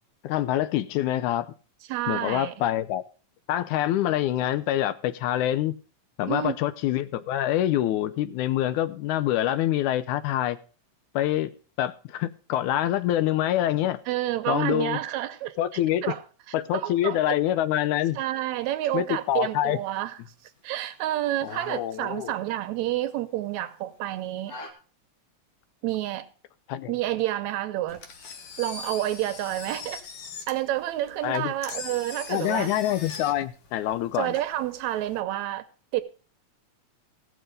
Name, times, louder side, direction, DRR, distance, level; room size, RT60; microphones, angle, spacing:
voice 1, 0.2-1.5 2.1-3.0 3.5-5.7 6.2-10.6 11.2-11.5 11.8-14.0 14.5-15.0 15.6-16.0 16.5-18.2 18.9-19.8 21.4-22.3 26.7-26.9 31.2-31.5 32.3-34.3, left 12 dB, 85° left, 2.2 m, -26 dB
voice 2, 1.9-2.5 6.3-6.6 14.1-15.6 16.0-16.2 16.7-17.4 18.2-20.2 20.6-24.6 25.8-26.3 26.9-28.0 28.6-30.0 30.5-32.7 34.1-35.7 35.9-36.0, right 14 dB, 75° right, 1.9 m, -29 dB
sound 1, 18.5-24.7, left 2 dB, 40° left, 1.4 m, -49 dB
Engine, 27.9-35.2, left 5 dB, 55° left, 1.9 m, -41 dB
15.5 x 6.3 x 5.2 m
omnidirectional pair, 3.4 m